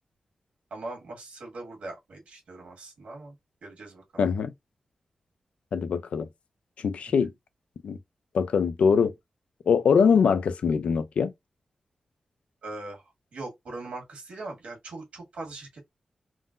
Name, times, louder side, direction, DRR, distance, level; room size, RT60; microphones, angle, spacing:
voice 1, 0.7-3.3 3.6-4.3 12.6-13.0 13.3-15.9, right 2 dB, 90° right, 1.4 m, -40 dB
voice 2, 4.2-4.5 5.7-6.3 6.8-7.3 7.8-8.0 8.3-9.1 9.7-11.3, left 6 dB, 85° left, 0.4 m, -23 dB
3.6 x 2.1 x 2.4 m
wide cardioid pair, 145°, 2 cm